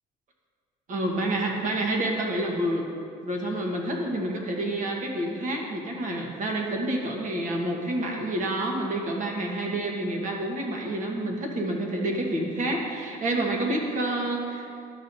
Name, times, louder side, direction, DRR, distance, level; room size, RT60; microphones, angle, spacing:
voice 1, 0.9-2.8 3.2-14.7, right 1 dB, 50° right, 0 dB, 1.4 m, -28 dB
11.5 x 7.0 x 2.7 m, 2.4 s
cardioid pair, 110°, 17 cm